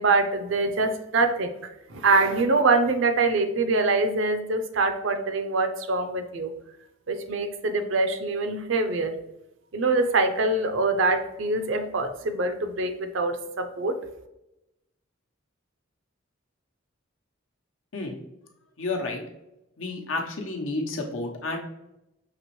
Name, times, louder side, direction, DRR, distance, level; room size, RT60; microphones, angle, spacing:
voice 1, 0.0-1.5 1.9-6.5 7.1-9.2 9.7-14.0, right 3 dB, 65° right, 8 dB, 0.5 m, -24 dB
voice 2, 18.8-19.2 19.8-21.6, left 2 dB, 80° left, 1 dB, 0.8 m, -30 dB
5.9 x 3.0 x 3.0 m, 0.90 s
head